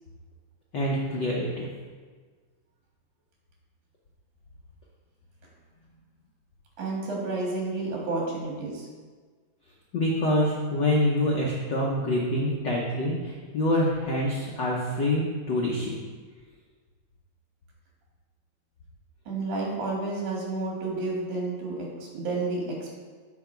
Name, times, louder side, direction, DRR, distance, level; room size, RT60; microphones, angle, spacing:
voice 1, 0.7-1.7 9.9-16.0, left 1 dB, 85° left, -3 dB, 1.0 m, -26 dB
voice 2, 6.8-8.9 19.3-22.9, right 3 dB, 80° right, -2 dB, 3.3 m, -31 dB
7.9 x 6.0 x 4.5 m, 1.5 s
omnidirectional pair, 3.5 m